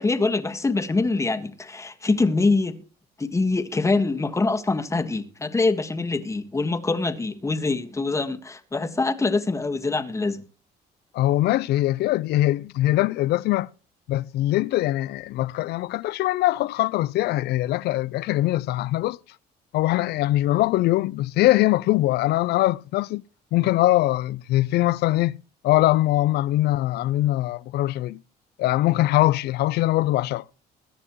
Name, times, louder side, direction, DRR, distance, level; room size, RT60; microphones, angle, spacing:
voice 1, 0.0-2.8 3.2-10.5, left 3 dB, 15° left, 1.6 m, -24 dB
voice 2, 11.1-13.7 14.1-19.2 19.7-23.2 23.5-25.4 25.6-28.2 28.6-30.4, left 16 dB, 75° left, 0.5 m, -22 dB
22.0 x 9.9 x 3.1 m
cardioid pair, 110°, 17 cm